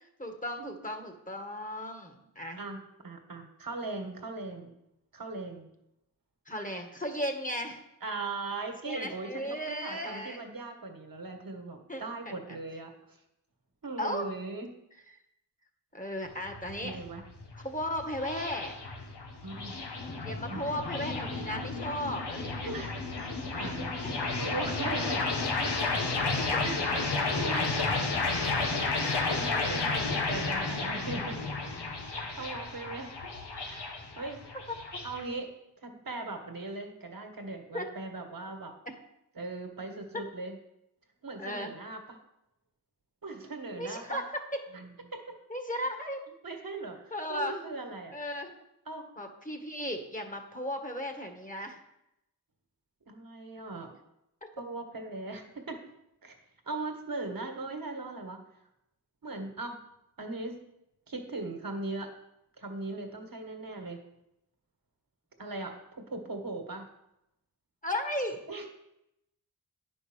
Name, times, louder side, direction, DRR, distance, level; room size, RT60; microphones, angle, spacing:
voice 1, 0.2-2.6 6.5-7.8 8.9-10.4 11.9-12.3 14.0-14.3 15.9-17.0 17.6-18.7 20.2-22.7 24.0-24.3 26.5-26.9 37.7-37.8 40.1-40.2 41.4-41.7 43.8-44.2 44.5-44.6 45.5-46.2 47.1-47.6 48.1-48.5 49.2-51.8 67.8-68.4, left 1 dB, 20° left, 4 dB, 1.7 m, -35 dB
voice 2, 2.6-4.7 5.1-5.7 8.0-13.2 13.8-14.7 16.8-17.2 19.4-19.8 20.5-20.8 22.6-25.3 25.9-26.8 27.1-27.9 28.9-31.4 32.0-33.2 33.6-33.9 34.2-34.6 35.0-35.5 35.8-38.7 39.3-40.6 41.2-42.2 43.2-44.2 44.7-45.4 46.4-48.2 48.8-49.1 53.0-54.0 54.6-55.8 56.2-56.3 56.6-58.4 59.2-59.9 60.2-60.5 61.1-62.1 62.6-64.0 65.4-66.9 68.5-68.6, right 3 dB, 55° right, 5 dB, 1.6 m, -39 dB
sound 1, 16.3-35.2, left 3 dB, 85° left, 1.4 m, -32 dB
9.3 x 5.4 x 6.2 m, 0.83 s
cardioid pair, 55°, 40 cm